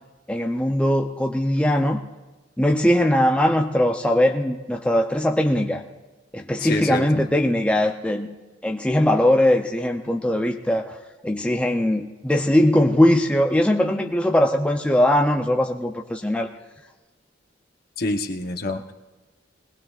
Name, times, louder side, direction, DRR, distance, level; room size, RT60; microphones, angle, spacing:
voice 1, 0.3-2.0 2.6-5.8 6.3-8.3 8.6-10.9 11.2-16.5, left 1 dB, 5° left, 2 dB, 0.5 m, -20 dB
voice 2, 6.6-7.1 18.0-18.9, left 2 dB, 50° left, 5 dB, 0.9 m, -26 dB
21.5 x 18.5 x 2.4 m, 1.2 s
head